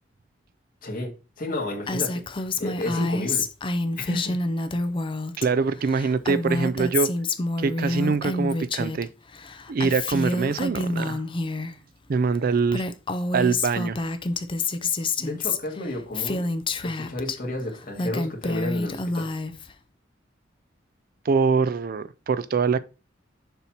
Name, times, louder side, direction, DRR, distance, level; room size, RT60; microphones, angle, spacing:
voice 1, 0.8-2.2 2.6-3.5 4.0-4.4 15.2-16.5 16.8-19.3, left 1 dB, 50° left, 1.8 m, -32 dB
Female speech woman speaking, 1.9-5.5 5.7-9.0 9.3-11.7 12.4-12.5 12.7-17.4 17.8-19.7, left 2 dB, 25° left, 0.5 m, -28 dB
voice 2, 5.4-7.1 7.6-9.1 9.7-11.2 12.1-12.9 13.3-14.0 21.2-22.8, right 5 dB, 50° right, 0.4 m, -24 dB
6.8 x 2.9 x 5.6 m
head